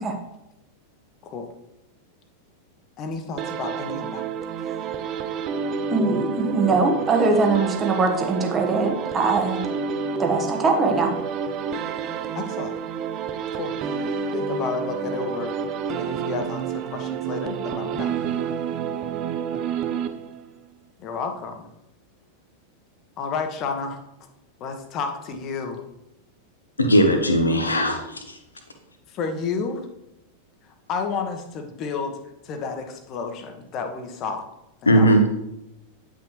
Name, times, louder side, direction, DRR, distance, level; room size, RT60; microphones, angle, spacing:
voice 1, 3.0-4.2 12.3-12.7 13.5-13.7 14.3-15.5 16.0-18.1 21.0-21.7 23.2-24.0 24.6-25.8 29.1-29.8 30.9-32.2 32.4-34.5 34.8-35.3, left 5 dB, 35° left, 6 dB, 1.2 m, -31 dB
sound 1, 3.4-20.6, right 6 dB, 35° right, 0.6 m, -29 dB
voice 2, 5.9-9.6 10.2-11.1, right 3 dB, 20° right, 2 dB, 1.5 m, -21 dB
voice 3, 26.8-28.4 34.9-35.2, equal, 80° left, 5 dB, 1.1 m, -18 dB
9.7 x 6.0 x 3.2 m, 0.87 s
figure-of-eight pair, 90°, 0 cm